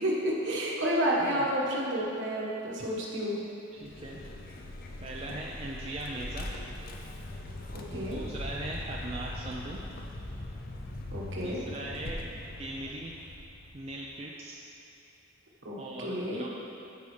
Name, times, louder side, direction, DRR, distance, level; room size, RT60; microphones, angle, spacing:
voice 1, 0.0-3.4 7.7-8.2 11.1-11.6 15.6-16.4, equal, 60° right, -4 dB, 1.4 m, -30 dB
voice 2, 3.7-4.2 5.0-6.5 7.9-9.8 11.4-13.1 13.7-14.6 15.7-16.5, right 1 dB, 30° right, -3 dB, 0.4 m, -39 dB
Vehicle, 3.8-14.1, left 1 dB, 45° left, 0.6 m, -41 dB
13.0 x 5.4 x 3.3 m, 2.8 s
head